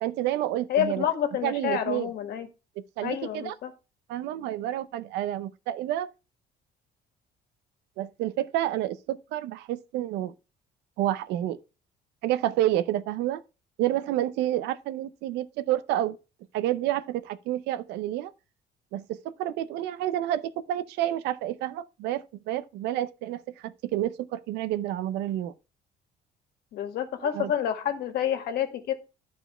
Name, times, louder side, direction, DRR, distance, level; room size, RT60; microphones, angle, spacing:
voice 1, 0.0-1.0 1.4-2.1 2.8-3.5 4.1-6.1 8.0-10.3 11.0-11.6 12.2-13.4 13.8-16.2 16.5-18.3 18.9-25.5 27.2-27.5, right 13 dB, 90° right, 0.7 m, -29 dB
voice 2, 0.7-2.5 3.0-3.7 26.7-28.9, left 10 dB, 70° left, 1.7 m, -28 dB
11.0 x 4.8 x 4.3 m
cardioid pair, 110°, 17 cm